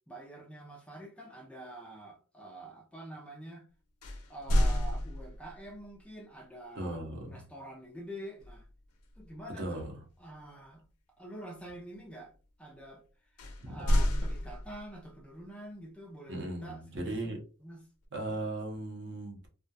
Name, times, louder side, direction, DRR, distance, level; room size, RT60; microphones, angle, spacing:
voice 1, 0.1-3.7 4.3-7.0 7.3-8.7 9.2-9.9 10.2-10.8 11.2-12.3 12.6-13.0 13.7-17.2 17.6-17.8, right 1 dB, 5° left, 0.3 m, -46 dB
sound 1, 4.0-5.7 8.4-8.7 9.1-9.4 13.4-15.0, equal, 85° left, 0.5 m, -29 dB
voice 2, 6.7-7.4 9.6-9.9 13.6-13.8 16.3-17.4 18.1-19.5, right 2 dB, 55° right, 0.7 m, -37 dB
2.3 x 2.1 x 2.6 m
head